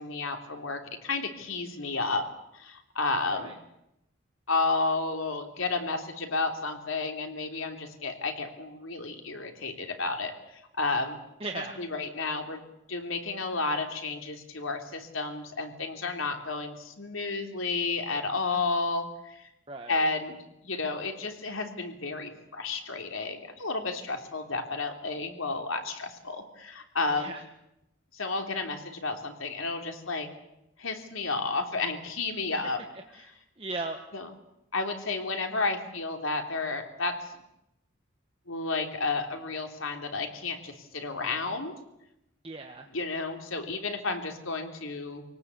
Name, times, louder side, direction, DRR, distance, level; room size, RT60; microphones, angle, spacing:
voice 1, 0.0-2.2 2.5-3.5 4.5-10.3 10.8-11.2 11.8-12.6 12.9-19.5 19.9-20.4 20.6-27.3 28.1-30.3 30.8-32.8 33.1-33.3 34.1-34.3 34.7-37.3 38.5-41.7 42.9-45.2, left 3 dB, 75° left, 4 dB, 3.4 m, -32 dB
voice 2, 11.4-11.8 19.7-20.0 27.2-27.4 33.1-33.2 33.6-34.0 42.4-42.9, right 3 dB, 25° right, 3 dB, 1.4 m, -37 dB
26.0 x 18.5 x 8.3 m, 0.85 s
head